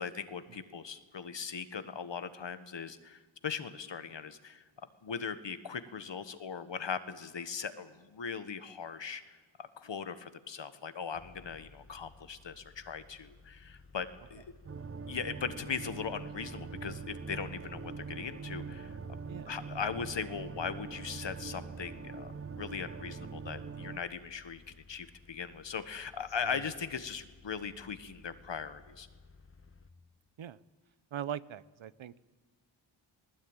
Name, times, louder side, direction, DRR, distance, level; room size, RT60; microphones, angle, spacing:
voice 1, 0.0-4.6 5.0-14.4 15.1-19.0 19.5-24.6 24.9-29.1, left 6 dB, 60° left, 11 dB, 1.4 m, -39 dB
sound 1, 11.1-29.9, left 4 dB, 25° left, 1.2 m, -57 dB
sound 2, 14.6-24.0, right 5 dB, 30° right, 0.7 m, -43 dB
voice 2, 31.1-32.1, right 9 dB, 70° right, 17 dB, 0.8 m, -41 dB
20.0 x 19.5 x 8.9 m, 1.3 s
wide cardioid pair, 95°, 49 cm